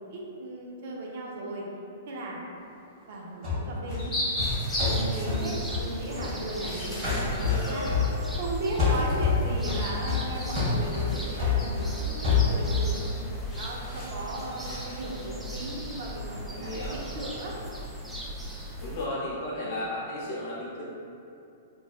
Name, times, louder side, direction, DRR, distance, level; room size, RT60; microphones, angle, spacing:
voice 1, 0.0-1.7 2.1-2.4 3.1-4.2 4.8-7.9 8.4-13.1 13.6-17.5, right 2 dB, 60° right, -2 dB, 0.5 m, -36 dB
sound 1, 3.4-6.7 7.0-8.5 8.8-12.9, left 5 dB, 30° right, 1.5 m, -27 dB
sound 2, 3.9-17.3, equal, 15° left, 0.9 m, -39 dB
sound 3, 4.4-19.1, equal, 5° right, 0.3 m, -38 dB
voice 2, 7.4-7.9 16.5-17.0 18.8-20.8, left 1 dB, 55° left, -7 dB, 0.8 m, -34 dB
3.1 x 2.2 x 2.4 m, 2.6 s
hypercardioid pair, 140°, 0 cm